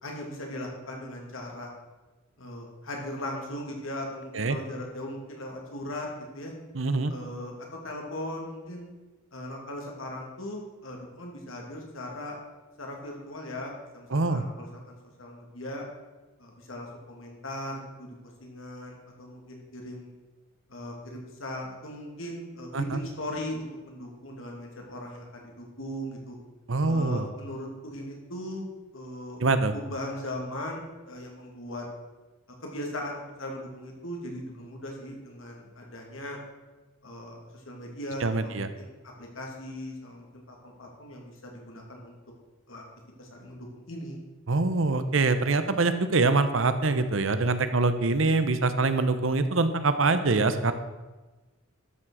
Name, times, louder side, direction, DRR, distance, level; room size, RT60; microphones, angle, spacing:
voice 1, 0.0-1.7 2.4-6.1 6.3-6.5 7.1-8.9 9.3-12.4 12.8-15.8 16.4-20.1 20.7-26.4 26.8-28.7 28.9-29.4 29.7-31.9 32.6-36.4 37.0-38.9 39.2-42.1 42.7-42.8 43.2-44.2, left 1 dB, 75° left, 0 dB, 2.6 m, -38 dB
voice 2, 6.7-7.1 14.1-14.4 22.7-23.0 26.7-27.3 29.4-29.7 38.2-38.7 44.5-50.7, right 3 dB, 70° right, 10 dB, 0.9 m, -24 dB
12.5 x 6.2 x 6.4 m, 1.2 s
head